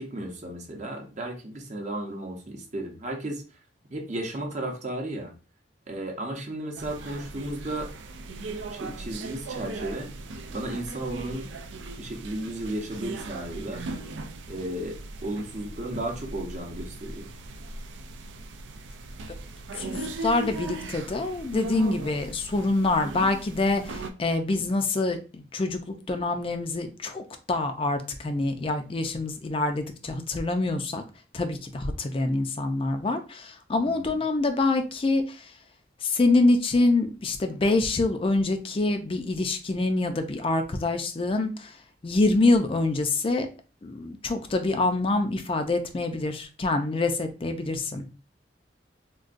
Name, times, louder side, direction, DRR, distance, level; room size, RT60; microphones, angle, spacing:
voice 1, 0.0-3.4 3.9-5.3 5.9-7.9 8.7-10.1 10.5-11.5 12.0-13.8 14.5-17.3 33.8-34.2, right 1 dB, 40° right, 2 dB, 0.7 m, -34 dB
sound 1, 6.8-24.1, right 2 dB, 90° right, 0.4 m, -38 dB
voice 2, 19.8-31.0 31.3-35.4 36.0-41.7 42.0-43.5 43.8-48.1, left 2 dB, 30° left, 7 dB, 0.4 m, -26 dB
3.8 x 2.2 x 2.5 m, 0.32 s
head